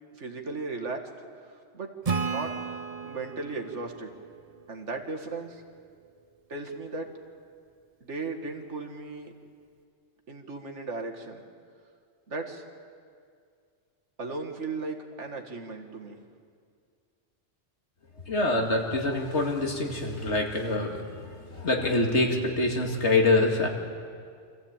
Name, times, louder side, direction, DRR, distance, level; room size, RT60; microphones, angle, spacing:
voice 1, 0.2-1.0 1.7-1.9 2.2-2.5 3.0-4.1 4.7-5.6 6.5-7.1 8.0-9.3 10.3-11.4 12.3-12.6 14.2-16.2, right 3 dB, 75° right, 3 dB, 2.1 m, -36 dB
Acoustic guitar / Strum, 2.1-5.5, right 5 dB, 35° right, 0.8 m, -34 dB
voice 2, 18.3-21.0 21.5-23.7, left 2 dB, 70° left, 1 dB, 2.6 m, -25 dB
26.0 x 15.0 x 8.9 m, 2.2 s
omnidirectional pair, 1.2 m